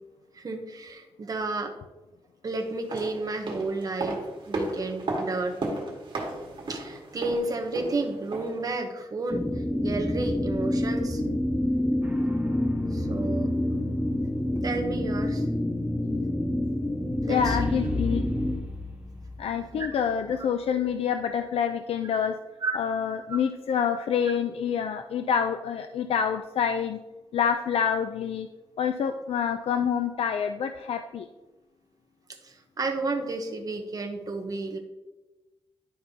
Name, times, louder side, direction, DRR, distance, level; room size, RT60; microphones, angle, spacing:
voice 1, 0.3-1.7 2.4-5.6 6.7-9.5 9.8-11.2 12.9-13.5 14.6-15.5 17.2-17.6 19.7-19.9 22.6-22.8 23.3-23.4 32.4-34.8, right 3 dB, 40° right, 4 dB, 0.9 m, -31 dB
sound 1, 2.7-8.7 9.0-9.1, right 2 dB, 55° right, 1.6 m, -34 dB
sound 2, 9.3-18.5, left 1 dB, 10° left, 0.7 m, -27 dB
sound 3, 12.0-12.9 17.4-20.4 20.6-20.7, left 3 dB, 15° right, 1.1 m, -36 dB
voice 2, 17.3-18.3 19.4-22.4 22.8-27.0 27.3-28.5 28.8-31.3, left 7 dB, 85° left, 8 dB, 0.4 m, -27 dB
11.0 x 5.3 x 2.8 m, 1.1 s
wide cardioid pair, 145°, 10 cm